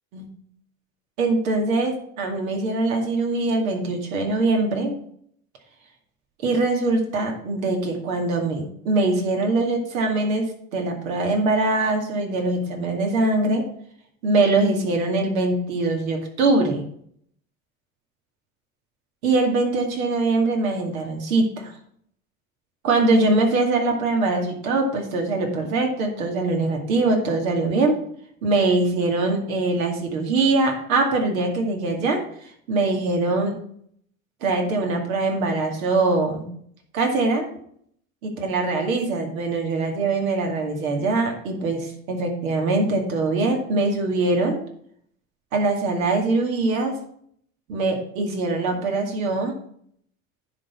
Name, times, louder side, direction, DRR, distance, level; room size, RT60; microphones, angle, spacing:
voice 1, 1.2-4.9 6.4-10.5 10.7-13.6 14.2-16.8 19.2-21.7 22.8-28.0 28.4-32.2 32.7-33.5 34.4-36.5 36.9-37.5 38.2-44.6 45.5-46.9 47.7-49.5, right 2 dB, 85° right, 2 dB, 2.4 m, -22 dB
10.5 x 4.3 x 6.0 m, 0.65 s
hypercardioid pair, 90°, 40 cm